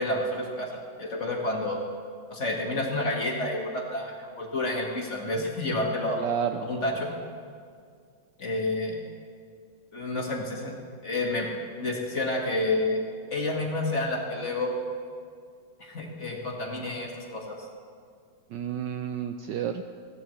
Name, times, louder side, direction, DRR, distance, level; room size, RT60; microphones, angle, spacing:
voice 1, 0.0-1.8 2.3-6.2 6.6-7.1 8.4-9.0 9.9-10.7 11.0-11.5 11.8-13.1 13.3-14.7 15.8-17.6, left 2 dB, 35° left, -1 dB, 1.9 m, -29 dB
voice 2, 6.2-6.7 18.5-19.9, right 8 dB, 75° right, 7 dB, 1.0 m, -30 dB
19.5 x 15.0 x 3.1 m, 2.1 s
omnidirectional pair, 2.2 m